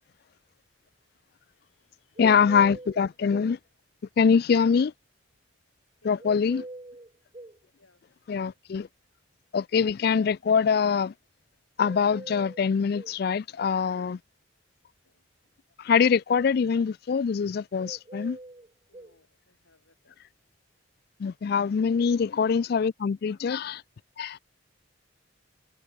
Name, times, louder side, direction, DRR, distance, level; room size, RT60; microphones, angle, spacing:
voice 1, 1.5-2.8 6.0-6.3 7.8-8.0 15.0-15.3 18.9-20.2, left 3 dB, 85° left, 7.1 m, -64 dB
voice 2, 2.2-3.6 4.2-4.9 6.0-6.6 8.3-8.9 9.5-11.1 11.8-14.2 15.8-18.4 21.2-23.8 24.2-24.4, left 6 dB, 50° left, 0.3 m, -24 dB
sound 1, 2.2-3.6 6.2-7.6 11.8-13.2 17.8-19.2, right 2 dB, 25° right, 0.8 m, -44 dB
head